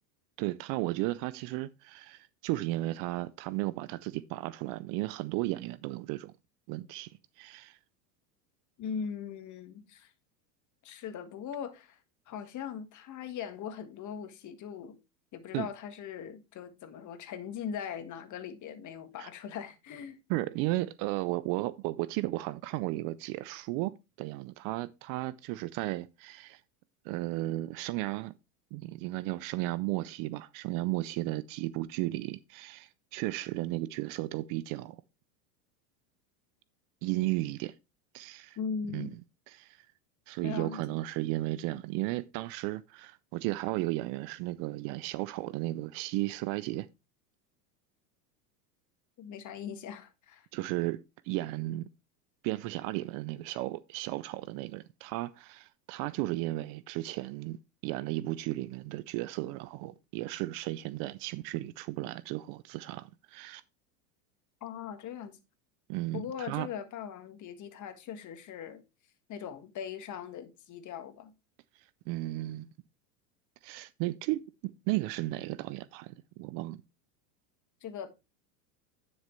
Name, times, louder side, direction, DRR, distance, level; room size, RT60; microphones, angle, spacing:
voice 1, 0.4-6.3 6.7-7.8 15.5-15.7 19.2-19.3 20.3-26.6 27.0-28.3 28.7-35.0 37.0-37.7 38.1-38.6 38.9-39.1 39.5-39.9 40.3-46.9 50.5-51.9 52.4-57.6 57.8-63.6 65.9-66.7 71.8-72.7 73.6-76.8, right 18 dB, 45° right, 0.5 m, -34 dB
voice 2, 8.8-10.1 10.8-12.0 12.3-15.0 15.3-20.2 38.6-39.2 40.4-40.8 49.2-50.5 64.6-65.4 66.1-68.8 69.3-71.3 77.8-78.1, left 7 dB, 35° left, 1.7 m, -40 dB
10.0 x 6.3 x 3.2 m
supercardioid pair, 110°, 48 cm